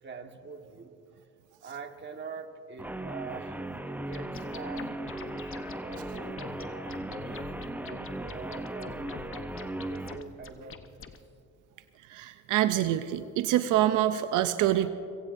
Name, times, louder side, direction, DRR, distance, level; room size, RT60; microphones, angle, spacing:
voice 1, 0.0-1.0 1.6-11.1, right 5 dB, 35° right, 5 dB, 1.5 m, -45 dB
Guitar, 2.8-10.2, right 1 dB, 5° right, 0.6 m, -37 dB
sound 1, 4.1-11.2, left 6 dB, 45° left, 0.9 m, -46 dB
voice 2, 12.1-14.9, right 13 dB, 85° right, 10 dB, 0.6 m, -26 dB
24.0 x 16.5 x 2.6 m, 2.7 s
cardioid pair, 90°, 30 cm